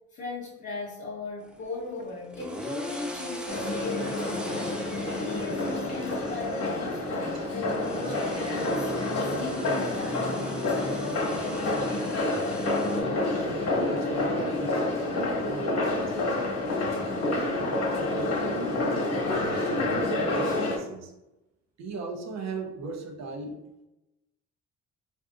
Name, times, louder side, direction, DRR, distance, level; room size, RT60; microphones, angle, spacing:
voice 1, 0.1-8.9 9.2-10.6, left 3 dB, 40° left, -5 dB, 0.7 m, -38 dB
sound 1, 1.4-13.0, equal, 5° right, 0.3 m, -40 dB
sound 2, 3.5-20.8, left 2 dB, 55° left, 1.1 m, -28 dB
voice 2, 12.2-12.5 13.5-17.3 18.0-21.1 21.8-23.6, right 3 dB, 60° right, 3 dB, 0.6 m, -39 dB
3.5 x 2.5 x 2.4 m, 0.95 s
cardioid pair, 90°, 30 cm